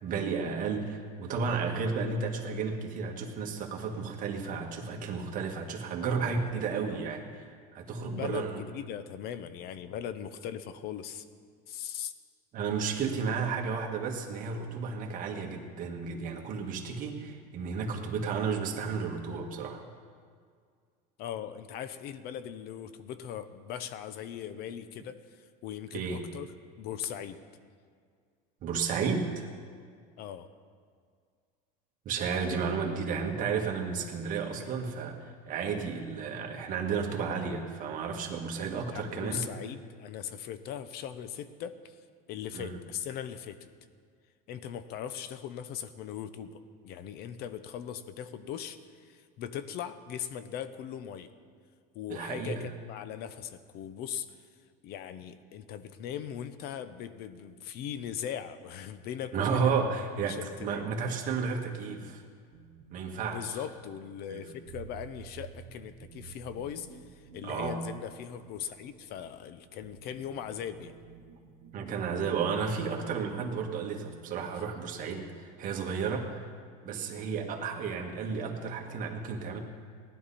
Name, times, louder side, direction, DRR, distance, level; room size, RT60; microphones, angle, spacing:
voice 1, 0.0-8.6 12.5-19.8 25.9-26.2 28.6-29.5 32.1-39.5 42.5-42.8 52.1-52.7 59.3-62.2 62.9-63.5 64.3-64.5 67.4-67.8 71.7-76.4 76.8-79.6, right 5 dB, 40° right, 1 dB, 1.9 m, -32 dB
voice 2, 6.0-6.3 8.0-11.2 11.7-12.1 21.2-26.5 26.8-27.4 30.2-30.5 38.9-42.0 42.3-43.7 44.5-51.3 51.9-54.3 54.8-59.9 60.2-60.8 63.3-70.9, left 9 dB, 50° left, 12 dB, 0.9 m, -39 dB
sound 1, 62.5-73.6, right 8 dB, 90° right, 1.2 m, -52 dB
18.5 x 11.5 x 4.3 m, 2.1 s
cardioid pair, 140°, 20 cm